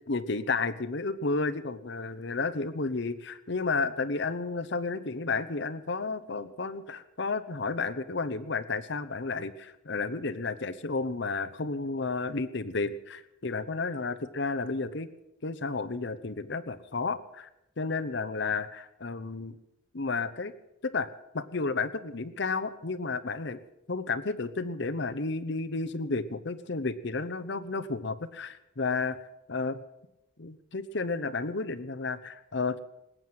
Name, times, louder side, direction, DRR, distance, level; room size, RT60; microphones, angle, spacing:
voice 1, 0.0-15.1 15.4-17.5 17.8-19.5 19.9-20.5 20.8-21.1 21.3-23.6 23.9-29.2 29.5-29.8 30.4-32.8, left 3 dB, 65° left, 14 dB, 0.9 m, -32 dB
20.0 x 9.2 x 7.9 m, 0.91 s
head